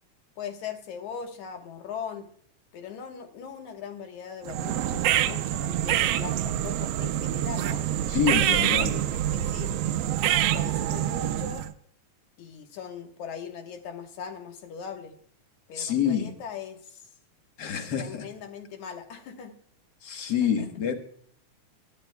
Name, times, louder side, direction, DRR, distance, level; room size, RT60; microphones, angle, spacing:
voice 1, 0.4-2.3 2.7-7.9 8.5-9.7 10.4-11.7 12.4-15.1 15.7-17.0 18.0-19.6 20.4-20.7, left 7 dB, 75° left, 5 dB, 2.6 m, -40 dB
sound 1, 4.5-11.7, right 12 dB, 85° right, 1.3 m, -26 dB
voice 2, 8.1-8.9 15.7-16.3 17.6-18.3 20.0-20.9, left 8 dB, 55° left, 6 dB, 1.2 m, -27 dB
19.5 x 13.0 x 2.2 m, 0.62 s
omnidirectional pair, 3.4 m